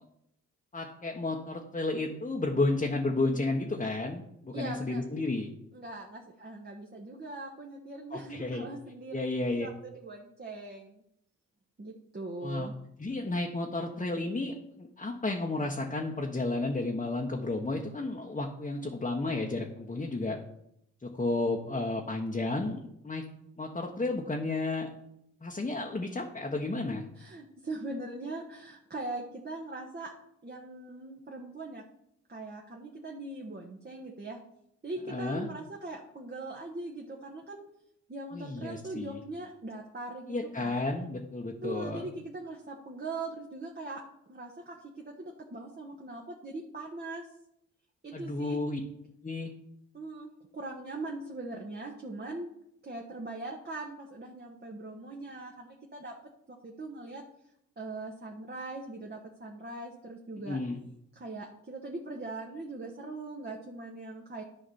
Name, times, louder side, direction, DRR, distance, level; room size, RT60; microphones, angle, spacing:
voice 1, 0.7-5.5 8.1-8.7 9.1-9.7 12.4-12.7 13.0-20.4 21.0-23.2 23.6-24.9 25.4-27.0 35.1-35.5 38.3-39.2 40.3-42.1 48.1-48.8 49.2-49.5 60.5-60.8, left 2 dB, 20° left, 0 dB, 1.4 m, -32 dB
voice 2, 4.5-5.1 5.7-11.0 11.8-12.7 27.1-30.1 30.4-31.8 32.3-34.4 34.8-37.6 38.1-40.8 41.6-44.0 44.3-47.3 48.0-48.6 49.9-52.5 52.8-56.1 56.5-57.2 57.8-60.6 61.1-64.4, right 2 dB, 30° right, 0 dB, 1.5 m, -41 dB
11.5 x 5.0 x 4.3 m, 0.77 s
hypercardioid pair, 50°, 34 cm